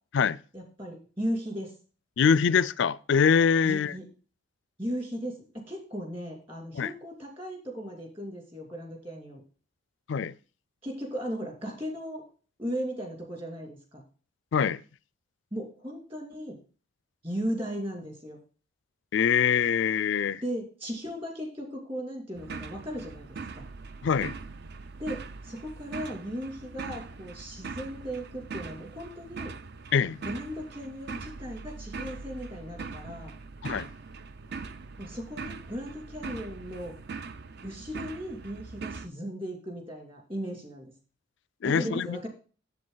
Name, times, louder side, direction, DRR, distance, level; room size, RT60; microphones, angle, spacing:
voice 1, 0.5-1.7 3.6-4.1 4.8-9.4 10.8-12.2 12.6-14.0 15.5-16.6 17.2-18.4 20.4-23.3 23.5-23.6 25.0-29.5 30.2-33.3 35.0-36.9 37.6-40.9 41.6-42.3, equal, 25° right, 2.6 m, -36 dB
voice 2, 2.2-3.9 6.7-6.9 10.1-10.3 14.5-14.8 19.1-20.4 24.0-24.3 29.9-30.2 33.6-33.9 41.6-42.3, left 6 dB, 55° left, 0.4 m, -24 dB
sound 1, 22.4-39.1, right 4 dB, 50° right, 0.5 m, -41 dB
7.6 x 7.6 x 3.9 m
head